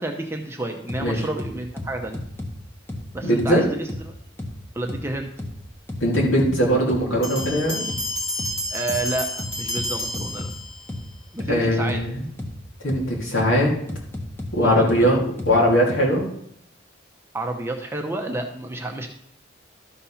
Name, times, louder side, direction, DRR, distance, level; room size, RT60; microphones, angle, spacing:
voice 1, 0.0-2.2 3.1-3.9 4.7-5.3 8.7-10.5 11.3-12.0 14.6-15.1 17.3-19.1, right 2 dB, 10° right, 3 dB, 0.7 m, -30 dB
sound 1, 0.9-1.0 1.4-2.5 2.9-3.0 3.4-3.5 3.9-4.0 4.4-4.5 4.9-5.0 5.4-5.5 5.9-6.5 6.9-7.0 7.4-7.5 7.9-8.0 8.4-8.5 8.9-9.0 9.4-10.5 10.9-11.0 11.4-11.5 11.9-12.0 12.4-12.5 12.9-13.0 13.4-13.5 13.9-14.5 14.9-15.0 15.4-15.5 15.9-16.0, left 1 dB, 10° left, 1.1 m, -32 dB
voice 2, 3.2-3.6 6.0-7.9 11.5-12.2 12.8-13.7 14.5-15.2 15.4-16.2, equal, 75° left, -3 dB, 2.8 m, -20 dB
sound 2, 7.2-11.0, left 1 dB, 30° left, 2.1 m, -30 dB
12.5 x 4.3 x 5.6 m, 0.72 s
head